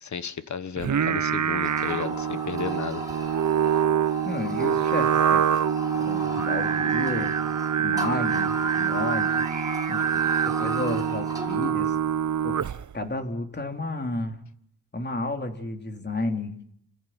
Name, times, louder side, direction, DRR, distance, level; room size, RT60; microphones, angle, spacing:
voice 1, 0.0-3.0, left 6 dB, 55° left, 13 dB, 1.4 m, -33 dB
Singing, 0.8-12.9, right 8 dB, 60° right, 0.8 m, -25 dB
sound 1, 1.6-11.8, left 1 dB, 10° right, 5.5 m, -36 dB
voice 2, 4.2-5.4 6.0-7.3 7.8-9.4 9.9-12.0 12.4-12.6 12.9-14.4 14.9-16.6, left 2 dB, 30° left, 5 dB, 3.1 m, -32 dB
29.0 x 14.5 x 9.1 m, 0.72 s
wide cardioid pair, 100°, 34 cm